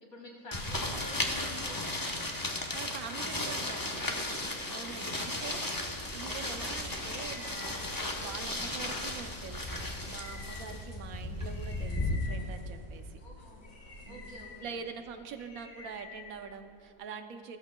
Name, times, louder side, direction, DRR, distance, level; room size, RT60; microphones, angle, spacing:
voice 1, 0.0-2.3 3.4-3.8 4.0-4.5 5.4-5.8 13.2-13.8 14.1-14.7, left 1 dB, 55° left, 0 dB, 2.2 m, -48 dB
sound 1, 0.5-12.2, left 1 dB, 20° left, 0.7 m, -35 dB
voice 2, 2.7-4.0 4.7-5.7 6.1-13.2 14.1-14.3 14.6-17.6, right 6 dB, 75° right, 7 dB, 1.1 m, -44 dB
sound 2, 6.3-16.9, left 3 dB, 85° left, 2.3 m, -49 dB
15.5 x 14.0 x 2.2 m, 2.3 s
omnidirectional pair, 1.5 m